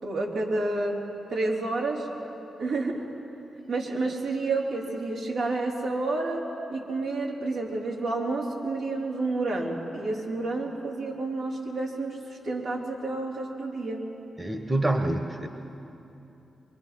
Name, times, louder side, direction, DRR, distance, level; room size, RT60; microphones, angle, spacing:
voice 1, 0.0-1.0 1.3-2.1 2.6-3.1 3.7-14.1, right 2 dB, 80° right, -4 dB, 4.0 m, -30 dB
voice 2, 14.4-15.5, right 1 dB, 20° right, 6 dB, 1.4 m, -26 dB
25.0 x 23.5 x 6.1 m, 2.9 s
cardioid pair, 60°, 0 cm